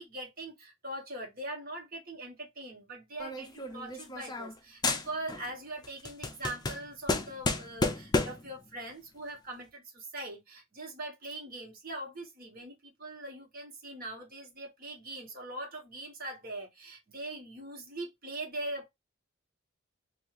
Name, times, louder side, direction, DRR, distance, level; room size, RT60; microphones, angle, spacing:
voice 1, 0.0-18.9, right 2 dB, 45° right, 1.5 m, -42 dB
sound 1, 3.2-4.6 4.8-5.5 5.8-8.5, left 3 dB, 20° left, 0.5 m, -32 dB
2.7 x 2.7 x 3.2 m
head